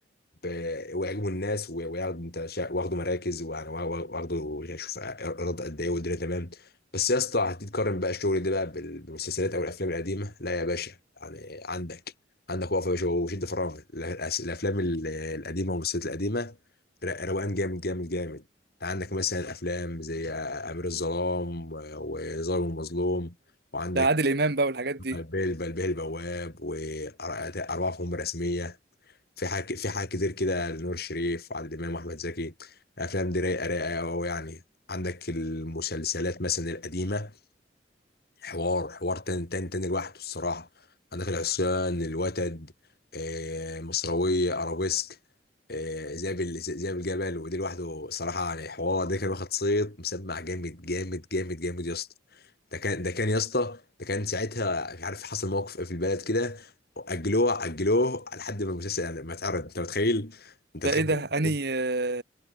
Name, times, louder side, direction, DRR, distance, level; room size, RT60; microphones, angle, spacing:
voice 1, 0.4-6.6 6.9-11.0 11.2-12.0 12.5-16.6 17.0-18.4 18.8-23.3 23.7-24.1 25.1-28.8 29.4-34.6 34.9-37.3 38.4-40.7 41.1-42.7 43.1-45.2 45.7-52.1 52.7-56.7 57.0-61.5, left 2 dB, 60° left, 4.0 m, -30 dB
voice 2, 23.9-25.2 60.8-62.2, right 2 dB, 60° right, 2.2 m, -26 dB
head